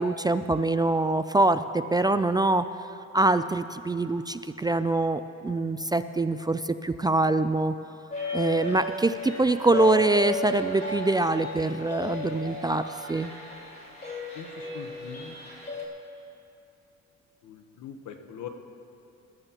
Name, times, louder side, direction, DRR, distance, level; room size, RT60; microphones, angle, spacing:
voice 1, 0.0-2.6 3.1-7.7 8.3-13.3, right 2 dB, 15° right, 11 dB, 0.3 m, -24 dB
sound 1, 8.1-15.9, left 2 dB, 30° left, 3.3 m, -34 dB
voice 2, 14.3-15.4 17.4-18.5, left 8 dB, 80° left, 6 dB, 1.1 m, -42 dB
21.0 x 13.0 x 2.9 m, 2.7 s
cardioid pair, 90°, 30 cm